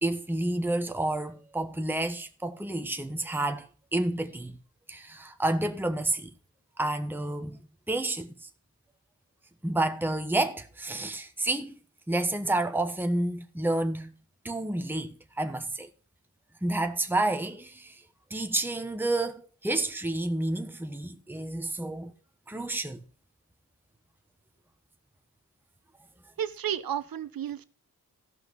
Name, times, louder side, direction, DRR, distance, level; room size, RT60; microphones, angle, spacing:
voice 1, 0.0-4.6 4.9-6.3 6.8-7.6 7.9-8.5 9.6-11.7 12.1-14.1 14.4-15.9 16.6-18.0 18.3-22.1 22.5-23.0, right 2 dB, 5° right, 1.1 m, -30 dB
voice 2, 26.4-27.6, right 10 dB, 75° right, 0.9 m, -32 dB
14.5 x 5.8 x 5.4 m
cardioid pair, 55°, 35 cm